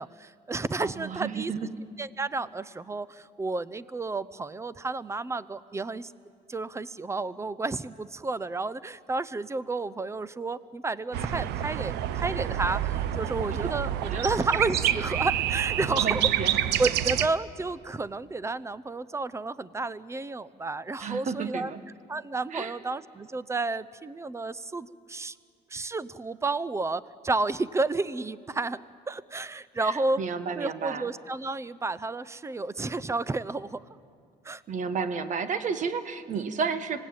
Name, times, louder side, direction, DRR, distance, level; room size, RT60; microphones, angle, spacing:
voice 1, 0.0-1.5 2.0-6.1 6.5-16.3 16.8-21.7 22.1-25.4 25.7-33.8 34.4-34.6, right 3 dB, 15° right, 18 dB, 0.6 m, -31 dB
voice 2, 0.8-1.7 13.6-13.7 14.1-14.3 15.9-16.8 21.0-21.8 22.5-22.7 29.8-31.1 34.7-37.1, right 5 dB, 45° right, 11 dB, 1.4 m, -32 dB
sound 1, 11.1-17.3, right 11 dB, 80° right, 0.8 m, -28 dB
26.0 x 17.5 x 8.8 m, 2.2 s
cardioid pair, 110°, 17 cm